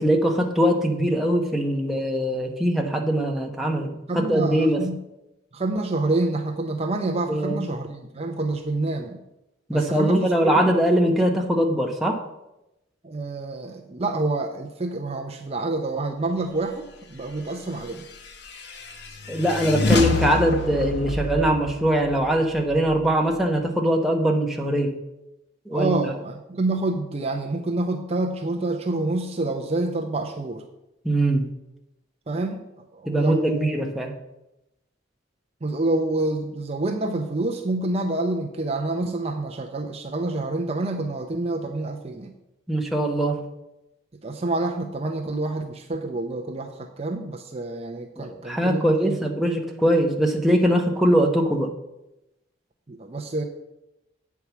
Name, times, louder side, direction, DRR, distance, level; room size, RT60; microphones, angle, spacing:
voice 1, 0.0-3.9 4.1-4.8 7.3-7.6 9.7-12.2 19.3-24.9 25.7-26.0 31.0-31.5 33.1-34.1 42.7-43.4 48.2-51.7, right 1 dB, ahead, 0 dB, 0.9 m, -22 dB
voice 2, 4.1-5.0 5.5-9.2 9.7-10.7 13.0-18.1 25.7-30.6 32.3-32.7 32.9-33.8 35.6-42.3 44.2-49.2 52.9-53.4, right 2 dB, 30° right, 3 dB, 0.6 m, -27 dB
sound 1, 17.8-23.4, left 3 dB, 60° left, 0.8 m, -28 dB
8.6 x 4.7 x 7.0 m, 0.91 s
head